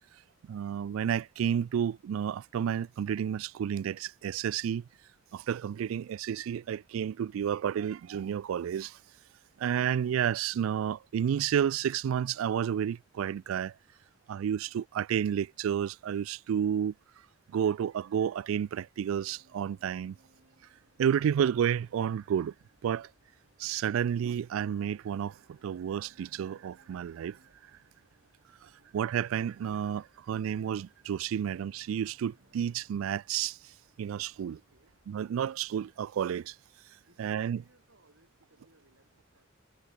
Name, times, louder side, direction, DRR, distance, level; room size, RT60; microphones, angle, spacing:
voice 1, 0.5-4.8 5.3-8.9 9.6-13.7 14.3-16.9 17.5-20.1 21.0-22.5 22.8-23.1 23.6-25.3 25.6-27.4 28.9-33.6 34.0-34.6 35.1-36.5 37.2-37.6, right 8 dB, 90° right, 0.3 m, -31 dB
sound 1, 19.0-35.2, right 1 dB, 55° right, 6.4 m, -68 dB
voice 2, 28.6-29.0 34.5-35.0 37.1-39.5, right 2 dB, 75° right, 7.6 m, -67 dB
head